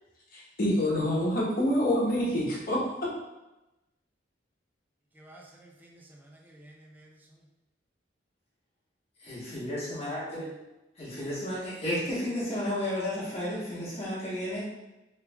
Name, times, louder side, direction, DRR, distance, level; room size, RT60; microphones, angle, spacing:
voice 1, 0.3-2.8, left 1 dB, 55° left, 1.0 m, -26 dB
voice 2, 5.1-7.5, right 1 dB, 10° right, 0.4 m, -53 dB
voice 3, 9.2-10.5 11.0-14.6, left 1 dB, 35° left, 1.1 m, -33 dB
3.1 x 2.3 x 3.3 m
head